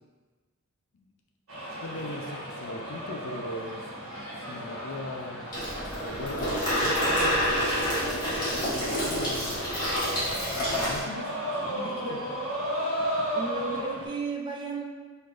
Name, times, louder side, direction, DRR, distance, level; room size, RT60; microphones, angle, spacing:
sound 1, 1.5-14.1, equal, 80° right, 1.3 m, -35 dB
voice 1, 1.8-3.8 4.4-5.5 6.0-9.6 10.6-12.2, left 2 dB, 65° left, 2 dB, 0.4 m, -39 dB
Water tap faucet / Sink (filling or washing), 5.5-11.0, equal, 20° left, 1.5 m, -28 dB
voice 2, 11.8-12.2 13.3-14.9, right 3 dB, 20° right, -1 dB, 0.4 m, -34 dB
6.3 x 2.5 x 2.4 m, 1.4 s
head